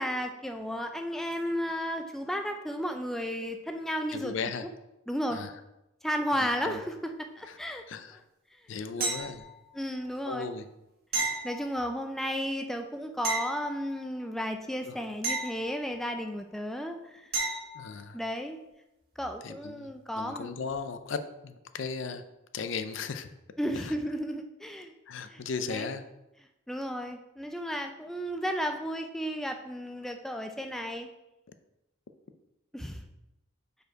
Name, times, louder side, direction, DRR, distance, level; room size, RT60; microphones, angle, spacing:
voice 1, 0.0-4.3 5.1-5.4 6.0-7.8 9.0-9.2 9.7-10.5 11.2-17.3 18.1-18.6 19.2-20.6 23.6-24.9 25.3-25.9 26.7-31.1 32.7-33.0, equal, ahead, 5 dB, 0.3 m, -33 dB
voice 2, 4.1-4.7 5.3-5.5 6.4-6.8 7.5-7.6 7.9-8.2 8.7-9.4 10.2-10.7 14.8-15.0 17.7-18.2 19.4-22.2 22.5-23.3 23.7-23.9 25.1-26.0, left 5 dB, 65° left, 10 dB, 0.4 m, -36 dB
sound 1, 9.0-9.8 11.1-12.2 13.2-14.3 15.2-16.3 17.3-17.9 20.7-20.8, right 3 dB, 50° right, 1.3 m, -34 dB
5.3 x 4.5 x 4.5 m, 0.92 s
head